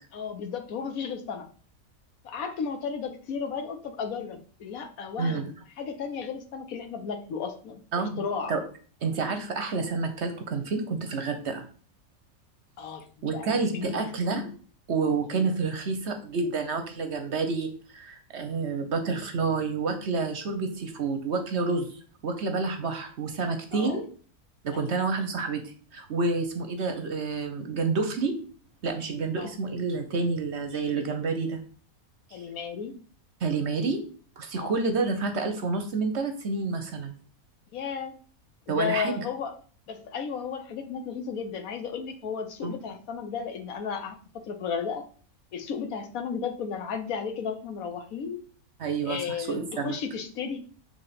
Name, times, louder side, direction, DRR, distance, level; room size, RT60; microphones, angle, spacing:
voice 1, 0.1-1.5 2.2-8.5 12.8-13.1 13.3-14.1 15.3-15.6 23.7-24.0 24.7-24.9 29.4-29.6 32.3-32.9 34.5-34.8 37.7-38.2 38.7-39.5 39.9-45.0 45.5-48.4 49.0-50.6, left 6 dB, 70° left, 7 dB, 1.3 m, -34 dB
voice 2, 7.9-8.2 8.5-8.6 9.0-11.6 13.2-14.5 14.9-21.9 22.2-24.0 24.6-28.4 28.8-31.6 33.4-34.0 34.4-37.1 38.7-39.1 42.6-42.7 48.8-50.0, right 4 dB, 55° right, 7 dB, 0.9 m, -29 dB
7.0 x 3.2 x 4.2 m, 0.42 s
omnidirectional pair, 1.5 m